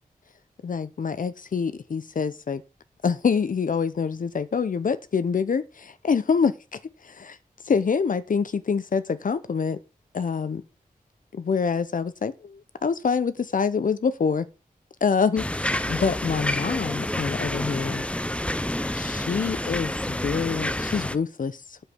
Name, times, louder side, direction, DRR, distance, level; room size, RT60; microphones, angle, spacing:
voice 1, 0.6-2.6 3.0-7.4 7.6-9.8 10.1-10.6 11.3-14.5 15.0-18.0 18.9-21.8, left 5 dB, 60° left, 0.7 m, -26 dB
sound 1, 15.4-21.2, left 1 dB, 10° left, 0.6 m, -28 dB
8.2 x 7.5 x 5.8 m
wide cardioid pair, 85°, 15 cm